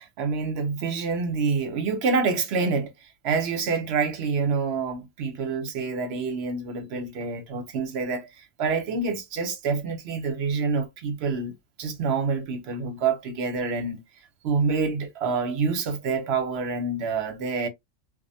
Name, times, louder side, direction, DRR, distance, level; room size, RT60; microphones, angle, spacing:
voice 1, 0.0-2.9 3.2-14.0 14.4-17.7, right 4 dB, 60° right, 0.8 m, -27 dB
2.3 x 2.1 x 2.6 m
omnidirectional pair, 1.4 m